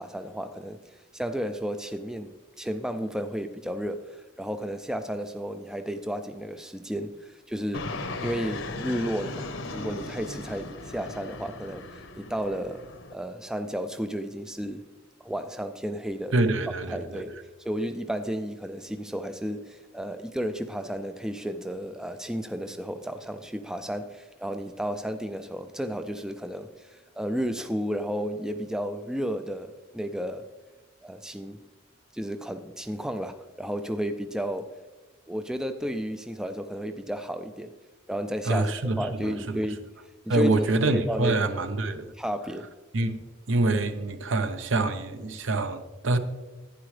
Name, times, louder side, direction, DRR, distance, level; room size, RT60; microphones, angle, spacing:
voice 1, 0.0-8.0 8.2-14.9 15.2-16.3 16.9-17.3 17.6-30.5 31.0-31.6 32.1-34.8 35.3-37.7 38.1-39.9 40.3-40.6 40.9-41.7 42.2-42.7, equal, 5° right, 0.3 m, -33 dB
Fixed-wing aircraft airplane, 7.7-13.1, left 2 dB, 70° left, 0.9 m, -37 dB
voice 2, 16.3-17.4 38.5-39.6 40.3-42.1 42.9-43.2 43.5-46.2, right 2 dB, 70° right, 0.8 m, -26 dB
11.5 x 9.7 x 3.2 m
head